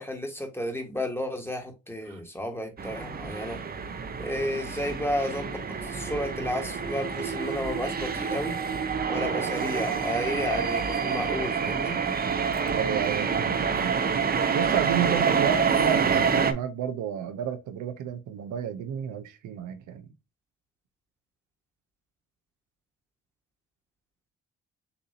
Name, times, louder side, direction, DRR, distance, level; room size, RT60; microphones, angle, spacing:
voice 1, 0.0-3.6 4.2-8.6 9.1-12.0, left 1 dB, 10° left, 1.5 m, -32 dB
sound 1, 2.8-16.5, right 6 dB, 30° right, 0.7 m, -27 dB
voice 2, 12.7-14.0 14.5-20.0, right 9 dB, 75° right, 0.8 m, -31 dB
6.9 x 2.7 x 2.7 m
cardioid pair, 90°, 30 cm